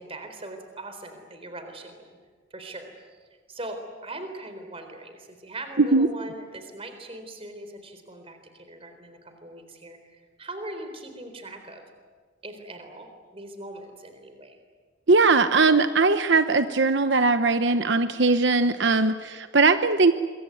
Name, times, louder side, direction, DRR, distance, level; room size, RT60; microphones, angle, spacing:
voice 1, 0.0-2.1 2.5-3.2 3.5-11.8 12.4-14.6, right 2 dB, 30° right, 7 dB, 4.0 m, -40 dB
voice 2, 15.1-20.1, right 3 dB, 60° right, 10 dB, 1.0 m, -20 dB
26.5 x 23.5 x 9.5 m, 1.5 s
head